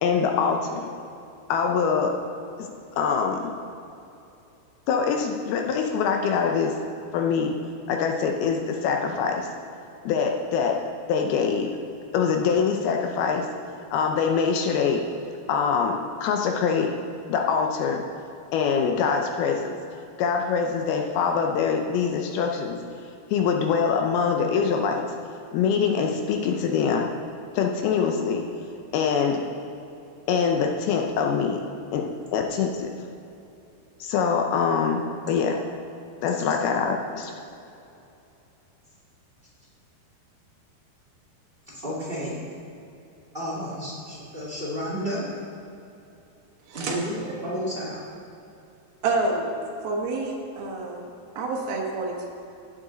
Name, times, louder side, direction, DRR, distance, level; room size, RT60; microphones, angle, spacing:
voice 1, 0.0-0.9 1.5-2.1 2.6-2.7 3.0-3.5 4.9-6.8 7.1-7.6 7.9-9.5 10.0-10.8 11.1-11.8 12.1-13.5 13.9-15.0 15.5-16.9 17.3-18.0 18.5-19.8 20.2-22.8 23.3-25.1 25.5-27.1 27.5-28.4 28.9-29.4 30.3-31.6 31.9-32.9 34.0-35.6 36.2-37.3, left 6 dB, 80° left, 2 dB, 2.5 m, -24 dB
voice 2, 41.7-42.4 43.3-45.3 46.7-48.0, equal, 25° right, -6 dB, 1.3 m, -31 dB
voice 3, 49.0-49.5 49.8-51.0 51.4-52.3, right 3 dB, 70° right, -1 dB, 3.0 m, -28 dB
16.0 x 7.8 x 3.9 m, 2.7 s
omnidirectional pair, 4.7 m